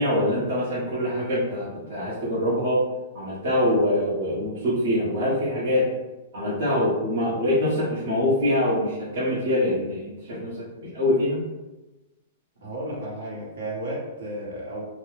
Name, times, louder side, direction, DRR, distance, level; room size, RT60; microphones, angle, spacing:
voice 1, 0.0-2.8 3.1-5.9 6.3-11.4, left 1 dB, 60° right, -7 dB, 1.2 m, -24 dB
voice 2, 12.6-14.8, right 1 dB, 75° right, -5 dB, 1.3 m, -33 dB
3.0 x 2.2 x 3.2 m, 1.1 s
supercardioid pair, 170°, 0 cm